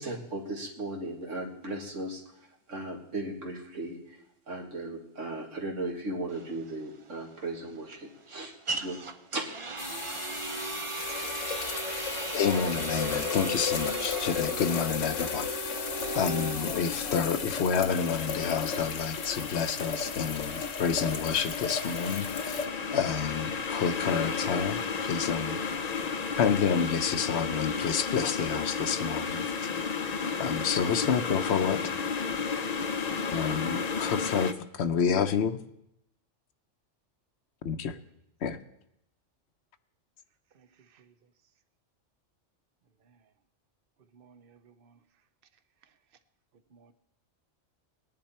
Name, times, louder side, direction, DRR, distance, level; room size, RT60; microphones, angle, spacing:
voice 1, 0.0-2.2 2.7-4.2 4.5-9.0 9.3-9.5 11.1-11.2, right 2 dB, 85° right, 0 dB, 2.4 m, -36 dB
sound 1, 6.3-20.1, right 4 dB, 35° right, 0.6 m, -38 dB
sound 2, 9.8-22.7, left 6 dB, 80° left, 1.3 m, -35 dB
voice 2, 12.3-15.5 16.1-25.6 26.4-29.4 30.4-31.9 33.3-35.6 37.6-38.0 38.4-38.6, left 6 dB, 65° left, 11 dB, 0.9 m, -29 dB
sound 3, 17.9-34.5, left 5 dB, 40° left, 0.6 m, -33 dB
voice 3, 40.5-41.1 43.0-43.3 44.1-45.0 45.8-45.9 46.7-46.9, right 6 dB, 50° right, 11 dB, 0.9 m, -60 dB
19.0 x 10.5 x 4.4 m, 0.81 s
omnidirectional pair, 1.3 m